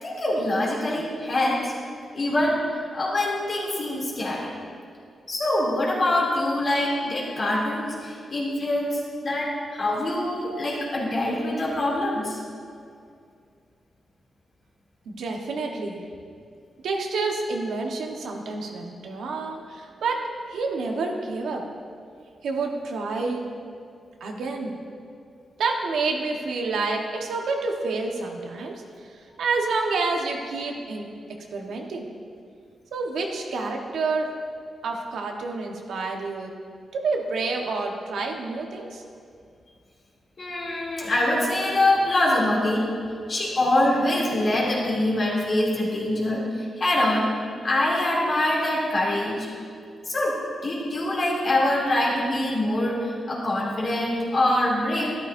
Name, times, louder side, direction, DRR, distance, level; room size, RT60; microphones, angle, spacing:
voice 1, 0.0-1.7 2.1-4.5 5.3-12.4 40.4-42.9 43.3-47.3 47.6-49.5 50.1-55.2, left 1 dB, 45° left, -4 dB, 2.8 m, -24 dB
voice 2, 15.0-16.0 16.8-20.2 20.5-21.6 22.4-23.5 24.2-24.7 25.6-28.7 29.0-31.1 31.5-32.1 32.9-34.3 34.8-36.5 36.9-39.0, right 3 dB, 90° right, 1 dB, 1.2 m, -28 dB
13.0 x 12.5 x 2.6 m, 2.3 s
wide cardioid pair, 125°, 0 cm